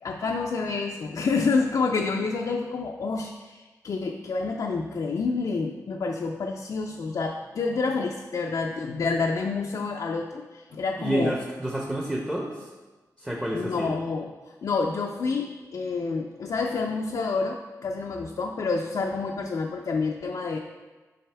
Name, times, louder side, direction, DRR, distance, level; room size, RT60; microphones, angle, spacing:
voice 1, 0.0-11.4 13.5-14.3 14.6-20.6, left 4 dB, 65° left, 1 dB, 0.5 m, -28 dB
voice 2, 11.0-12.7 13.2-14.0, right 1 dB, 10° right, -1 dB, 0.8 m, -29 dB
7.7 x 5.1 x 3.4 m, 1.2 s
cardioid pair, 80°, 7 cm